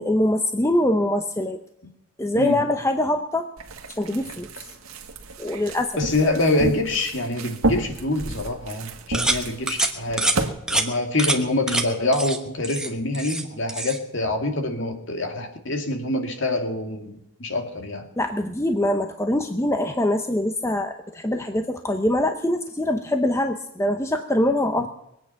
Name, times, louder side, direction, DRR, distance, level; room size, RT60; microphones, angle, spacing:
voice 1, 0.0-1.6 2.2-3.5 4.0-4.7 5.4-5.9 18.2-24.9, left 1 dB, 10° left, 6 dB, 0.7 m, -23 dB
sound 1, 3.6-10.5, right 2 dB, 75° right, 1.7 m, -31 dB
voice 2, 6.0-10.3 10.7-18.1 24.8-24.9, left 2 dB, 55° left, 4 dB, 2.4 m, -25 dB
sound 2, 9.1-9.4 9.7-9.9 10.2-10.4 10.7-10.9 11.2-11.4 11.7-11.8 12.1-12.4 12.6-13.4 13.7-14.0, right 2 dB, 5° right, 1.2 m, -24 dB
22.5 x 9.0 x 5.7 m, 0.81 s
head